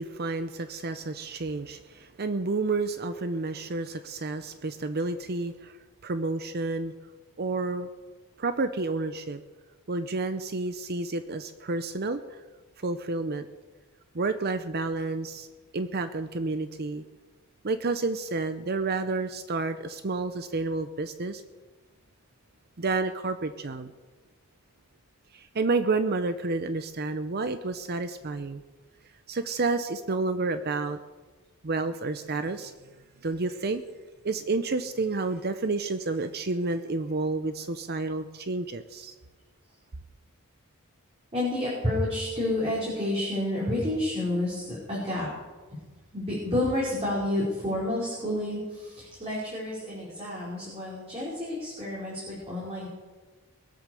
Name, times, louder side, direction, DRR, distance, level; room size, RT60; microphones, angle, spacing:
voice 1, 0.0-5.8 6.0-6.9 7.4-7.9 8.4-9.4 9.9-12.4 12.8-13.5 14.1-15.5 15.7-17.0 17.6-21.4 22.8-23.9 25.3-28.6 29.3-31.0 31.6-32.7 33.2-33.8 34.2-39.1, right 3 dB, 45° right, 10 dB, 0.7 m, -30 dB
voice 2, 41.3-45.3 46.1-52.9, left 1 dB, 25° right, -7 dB, 4.9 m, -30 dB
22.5 x 8.1 x 6.9 m, 1.3 s
head